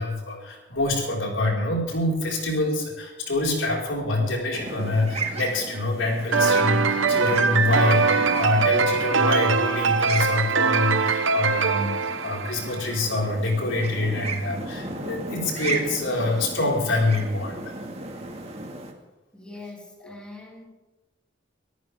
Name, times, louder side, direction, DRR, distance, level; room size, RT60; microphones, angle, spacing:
voice 1, 0.0-11.9 12.2-17.7, left 2 dB, 90° left, -2 dB, 5.0 m, -26 dB
sound 1, 4.5-18.9, right 2 dB, 35° right, 2.0 m, -35 dB
sound 2, 6.3-13.0, right 5 dB, 85° right, 0.9 m, -22 dB
voice 2, 19.3-20.6, left 2 dB, 5° left, -2 dB, 3.0 m, -42 dB
24.5 x 14.0 x 3.6 m, 1.1 s
head